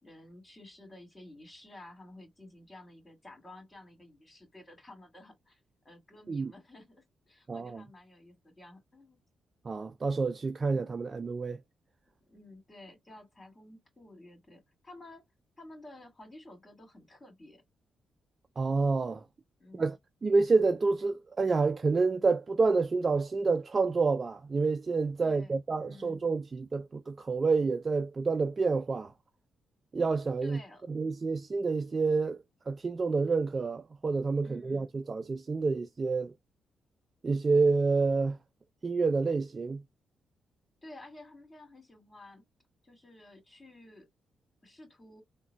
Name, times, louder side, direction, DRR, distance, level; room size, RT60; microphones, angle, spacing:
voice 1, 0.0-9.2 12.3-15.2 15.6-17.6 19.6-20.0 25.2-26.3 30.4-30.9 34.4-34.9 40.8-42.4 42.8-44.1 44.6-45.2, left 1 dB, 30° left, 2.1 m, -52 dB
voice 2, 7.5-7.8 9.7-11.6 18.6-19.2 19.7-20.0 20.2-29.1 29.9-30.6 30.9-32.4 32.7-36.3 37.2-38.4 38.8-39.8, right 4 dB, 40° right, 0.3 m, -28 dB
3.7 x 2.2 x 2.2 m
supercardioid pair, 50°, 0 cm